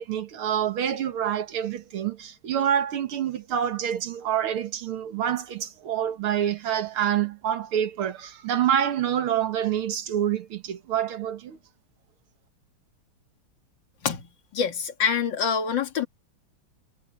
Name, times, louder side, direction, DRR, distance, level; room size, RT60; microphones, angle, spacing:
voice 1, 0.0-11.6, right 9 dB, 90° right, 2.3 m, -27 dB
voice 2, 14.5-16.1, left 6 dB, 60° left, 2.6 m, -25 dB
omnidirectional pair, 2.3 m